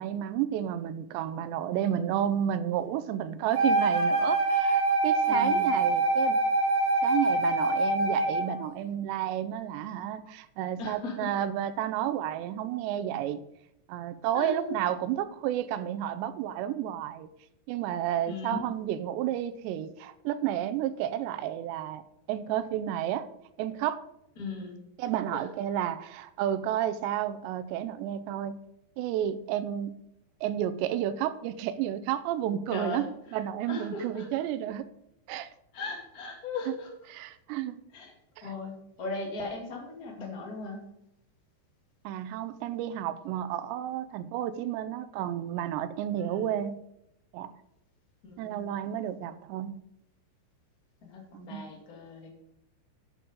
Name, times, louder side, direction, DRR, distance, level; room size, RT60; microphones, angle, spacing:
voice 1, 0.0-6.4 7.0-13.4 13.9-17.3 17.7-22.0 22.3-23.3 23.6-24.0 25.0-28.6 29.0-30.0 30.4-33.0 33.3-34.9 35.3-35.5 37.1-37.8 38.4-38.5 42.0-46.8 47.3-47.5 48.4-49.7 51.3-51.7, right 11 dB, 85° right, 12 dB, 2.8 m, -31 dB
Wind instrument woodwind instrument, 3.5-8.6, right 2 dB, 45° right, 3.6 m, -25 dB
voice 2, 5.3-5.7 10.8-11.3 14.3-14.9 18.3-18.8 24.4-24.8 25.3-25.5 32.7-33.1 33.7-34.3 35.7-36.9 37.9-38.1 38.4-40.9 46.2-46.5 48.2-48.7 51.0-52.3, left 3 dB, 30° left, 0 dB, 1.9 m, -38 dB
8.6 x 8.5 x 5.3 m, 0.80 s
omnidirectional pair, 5.1 m